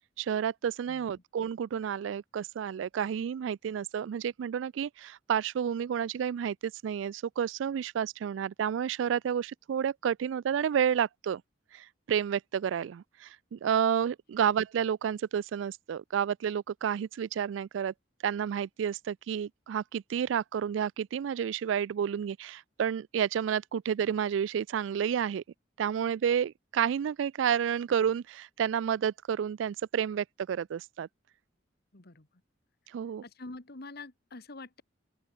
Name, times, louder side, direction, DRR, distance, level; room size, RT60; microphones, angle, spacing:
voice 1, 0.2-11.4 11.7-17.9 18.2-25.4 25.8-31.1 32.9-33.2, right 8 dB, 75° right, 0.3 m, -30 dB
voice 2, 31.9-32.3 33.2-34.8, left 2 dB, 60° left, 1.8 m, -46 dB
open air
head